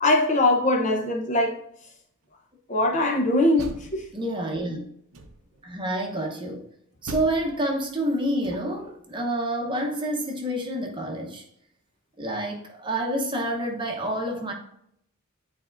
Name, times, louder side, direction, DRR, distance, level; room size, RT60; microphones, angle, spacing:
voice 1, 0.0-1.6 2.7-4.0, left 2 dB, 35° left, 0.8 m, -22 dB
Door, 3.3-4.6 5.1-5.7 7.0-8.9, right 2 dB, 80° right, 0.8 m, -41 dB
voice 2, 4.1-4.8 5.6-6.7 7.0-11.4 12.2-14.5, right 1 dB, 20° right, 0.9 m, -28 dB
10.0 x 4.3 x 2.5 m
head